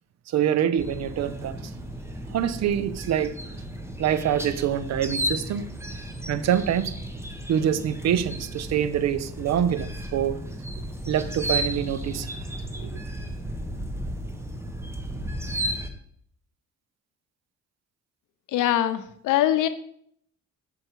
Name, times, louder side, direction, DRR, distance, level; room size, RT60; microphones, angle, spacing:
voice 1, 0.3-1.6 2.3-3.4 4.0-5.7 6.3-6.9 7.5-10.4 11.1-12.3 12.8-12.9, right 9 dB, 60° right, 0.6 m, -25 dB
sound 1, 0.8-15.9, right 1 dB, 10° right, 1.0 m, -34 dB
voice 2, 18.5-19.7, left 12 dB, 90° left, 0.6 m, -22 dB
6.5 x 5.4 x 4.5 m
cardioid pair, 90°, 30 cm